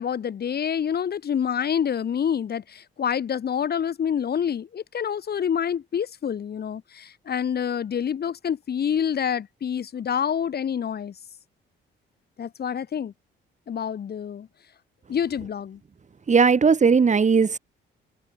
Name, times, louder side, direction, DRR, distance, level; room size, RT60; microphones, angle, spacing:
voice 1, 0.0-11.2 12.4-13.1 13.7-14.5 15.1-15.8, left 8 dB, 55° left, 2.8 m, -27 dB
voice 2, 16.3-17.6, right 5 dB, 35° right, 4.0 m, -18 dB
cardioid pair, 90°, 20 cm